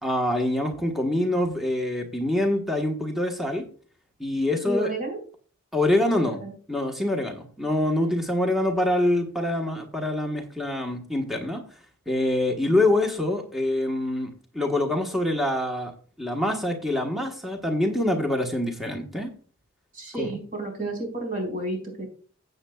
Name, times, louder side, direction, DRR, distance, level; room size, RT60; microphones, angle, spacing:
voice 1, 0.0-3.7 4.2-4.9 5.7-6.4 6.7-11.6 12.1-15.9 16.2-19.3 20.1-20.3, left 1 dB, ahead, 2 dB, 1.3 m, -25 dB
voice 2, 4.6-5.2 6.0-6.5 19.9-22.1, right 2 dB, 40° right, 2 dB, 4.6 m, -31 dB
15.5 x 8.1 x 2.3 m, 0.41 s
head